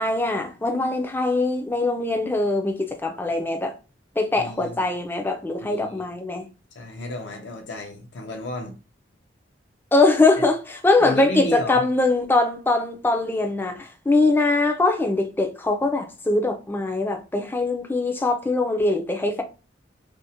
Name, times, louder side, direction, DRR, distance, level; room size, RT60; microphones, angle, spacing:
voice 1, 0.0-3.7 4.2-6.4 9.9-10.6 10.8-19.4, left 2 dB, 10° left, 0.3 m, -22 dB
voice 2, 4.3-4.9 5.6-6.1 6.7-8.7 10.4-10.5 11.0-11.8, left 1 dB, 75° left, 0.6 m, -32 dB
2.5 x 2.0 x 2.7 m
head